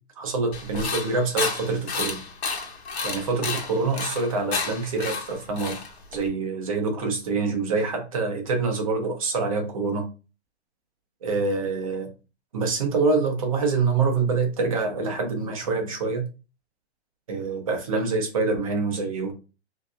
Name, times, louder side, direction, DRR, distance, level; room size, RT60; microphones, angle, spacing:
voice 1, 0.2-2.2 3.0-5.8 6.1-10.1 11.2-12.1 12.5-16.2 17.3-19.3, right 4 dB, 30° right, 0.7 m, -26 dB
sound 1, 0.5-6.3, left 4 dB, 65° left, 1.1 m, -31 dB
3.3 x 2.7 x 2.4 m
hypercardioid pair, 180°, 34 cm